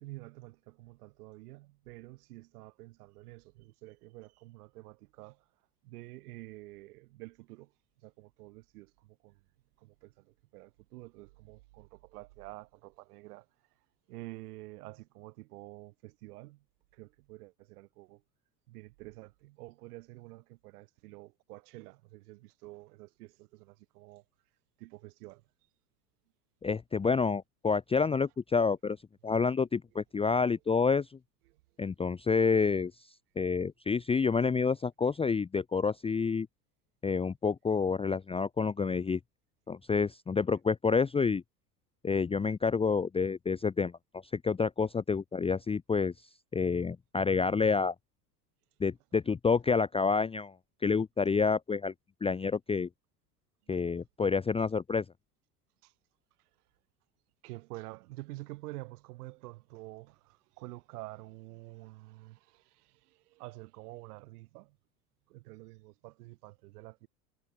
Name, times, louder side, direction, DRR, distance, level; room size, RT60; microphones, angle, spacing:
voice 1, 0.0-5.5 5.8-7.7 8.0-9.4 9.8-13.5 13.7-16.6 16.9-18.2 18.7-24.2 24.8-25.4 31.5-31.6 53.7-53.8 55.8-55.9 56.4-56.5 57.4-64.8 65.3-67.1, right 20 dB, 65° right, 2.9 m, -49 dB
voice 2, 26.6-29.0 29.2-31.1 31.8-32.9 33.4-36.5 37.0-39.2 39.7-41.4 42.0-43.9 44.3-46.1 46.5-47.9 48.8-50.5 50.8-51.9 52.2-52.9 53.7-55.0, left 5 dB, 10° left, 0.7 m, -28 dB
hypercardioid pair, 80°, 49 cm